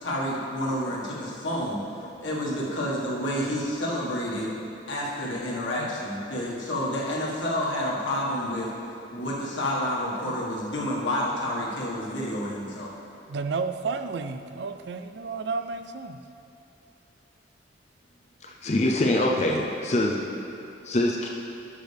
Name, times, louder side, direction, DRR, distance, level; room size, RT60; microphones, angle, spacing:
voice 1, 0.0-1.8 2.2-4.5 4.9-8.7 9.1-13.0, left 1 dB, 75° left, -5 dB, 1.7 m, -29 dB
voice 2, 13.2-16.2 18.5-18.6, right 4 dB, 60° right, 8 dB, 0.4 m, -32 dB
voice 3, 18.4-20.2 20.8-21.3, left 1 dB, 35° left, -1 dB, 0.6 m, -24 dB
11.5 x 6.2 x 3.4 m, 2.7 s
head